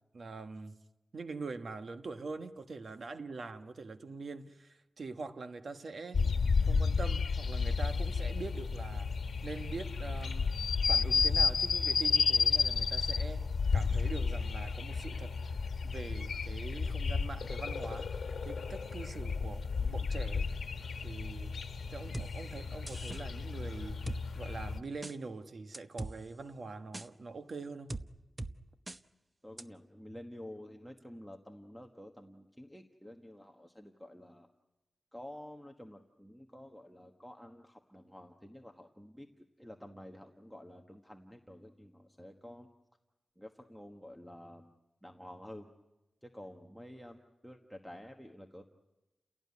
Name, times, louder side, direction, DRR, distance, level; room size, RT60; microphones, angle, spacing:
voice 1, 0.1-0.8 1.1-6.2 6.7-9.1 9.4-10.5 10.9-13.4 13.7-15.4 15.8-20.5 21.0-21.6 21.9-28.0, right 3 dB, 60° right, 1.3 m, -44 dB
sound 1, 6.1-24.8, left 5 dB, 85° left, 1.3 m, -32 dB
sound 2, 22.1-22.3 22.9-23.2 24.1-24.2 25.0-25.2 25.7-26.1 26.9-27.1 27.9-28.0 28.4-28.5 28.9-29.0 29.6-29.7, right 2 dB, 25° right, 0.9 m, -40 dB
voice 2, 29.4-34.5 35.1-39.3 39.6-42.7 43.4-44.7 45.0-45.7 46.2-48.7, left 1 dB, ahead, 1.4 m, -50 dB
30.0 x 17.5 x 9.6 m
wide cardioid pair, 115°, 0 cm